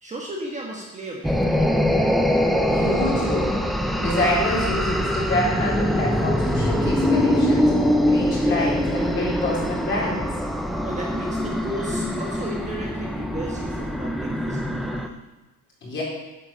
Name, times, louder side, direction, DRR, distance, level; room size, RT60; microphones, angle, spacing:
voice 1, 0.0-1.9 10.8-15.1, right 1 dB, 20° right, -2 dB, 1.4 m, -35 dB
sound 1, 1.2-15.1, equal, ahead, 0.5 m, -23 dB
voice 2, 2.6-3.6 4.0-10.3 15.8-16.0, left 1 dB, 35° left, -5 dB, 3.9 m, -27 dB
8.9 x 8.0 x 6.6 m, 1.0 s
cardioid pair, 175°, 34 cm